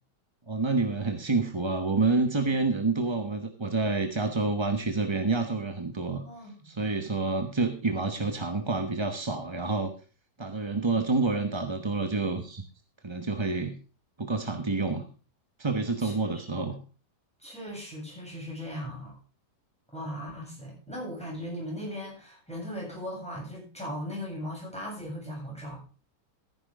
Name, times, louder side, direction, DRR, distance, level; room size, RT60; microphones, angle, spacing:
voice 1, 0.5-6.2 6.6-9.9 10.4-12.6 13.0-13.8 14.2-15.0 15.6-16.8, right 3 dB, 20° right, 6 dB, 0.8 m, -28 dB
voice 2, 6.2-6.7 16.0-16.4 17.4-19.1 19.9-25.8, equal, 5° left, -3 dB, 7.9 m, -38 dB
14.0 x 10.5 x 3.6 m, 0.37 s
omnidirectional pair, 1.9 m